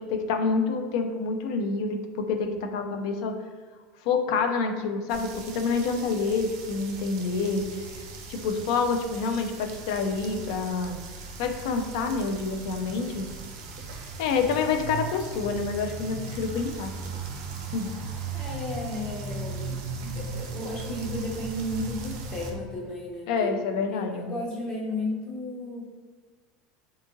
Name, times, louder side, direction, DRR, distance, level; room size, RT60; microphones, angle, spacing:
voice 1, 0.1-2.0 2.3-3.3 4.0-7.6 8.3-11.0 11.4-13.3 14.2-16.9 17.7-17.9 20.0-20.2 23.3-24.3, left 4 dB, 80° left, 5 dB, 0.3 m, -27 dB
sound 1, 5.1-22.5, right 3 dB, 75° right, 0.5 m, -38 dB
voice 2, 18.3-19.7 20.1-23.5 23.9-25.8, left 1 dB, 30° left, -3 dB, 0.7 m, -34 dB
2.7 x 2.4 x 2.6 m, 1.4 s
supercardioid pair, 120°, 3 cm